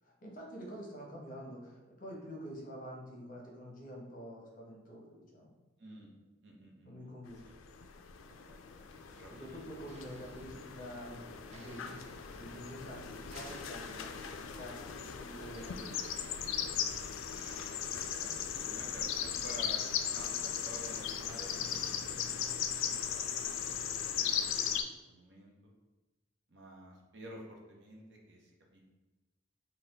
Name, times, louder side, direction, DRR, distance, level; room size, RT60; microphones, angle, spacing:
voice 1, 0.0-5.5 6.8-7.4 9.0-16.0, equal, 45° left, -2 dB, 0.8 m, -47 dB
voice 2, 5.8-6.1 6.4-7.1 8.1-8.6 8.9-9.7 17.9-24.5 25.1-25.5 26.5-28.8, right 1 dB, 60° right, -1 dB, 0.8 m, -52 dB
sound 1, 7.4-24.8, left 8 dB, 80° left, 0.3 m, -38 dB
sound 2, 8.2-19.7, right 1 dB, 30° right, 0.4 m, -58 dB
4.0 x 2.2 x 3.9 m, 1.2 s
head